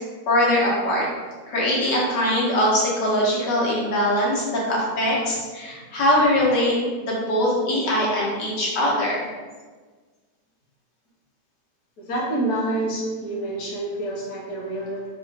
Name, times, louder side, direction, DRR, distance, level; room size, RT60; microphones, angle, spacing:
voice 1, 0.3-1.1 1.5-9.3, left 1 dB, 85° left, -5 dB, 1.7 m, -22 dB
voice 2, 12.0-15.1, right 1 dB, 70° left, -4 dB, 1.4 m, -27 dB
3.7 x 3.0 x 3.4 m, 1.4 s
omnidirectional pair, 1.8 m